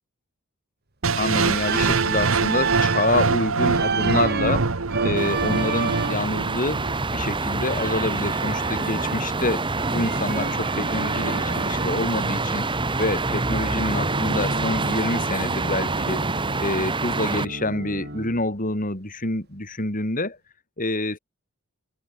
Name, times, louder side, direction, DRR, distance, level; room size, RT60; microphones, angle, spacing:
sound 1, 1.0-7.0, right 4 dB, 70° right, 1.2 m, -24 dB
voice 1, 1.1-16.2 16.6-20.4 20.8-21.2, left 2 dB, 40° left, 4.6 m, -27 dB
Organ, 1.6-3.2 3.7-6.4 7.7-9.4 9.8-12.1 13.6-15.4 15.7-18.5, right 5 dB, 50° right, 1.9 m, -31 dB
sound 2, 5.2-17.5, right 3 dB, 25° right, 1.5 m, -26 dB
head